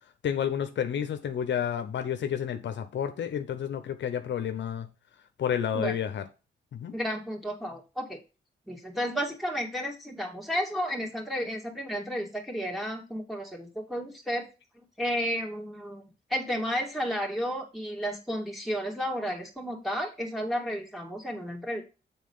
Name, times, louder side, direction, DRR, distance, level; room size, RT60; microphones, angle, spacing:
voice 1, 0.2-4.9 5.4-6.2 6.7-6.9, left 8 dB, 75° left, 0.9 m, -30 dB
voice 2, 6.9-8.2 8.7-14.5 14.7-16.0 16.3-21.8, equal, ahead, 2.7 m, -32 dB
7.4 x 4.0 x 5.7 m
cardioid pair, 70°, 19 cm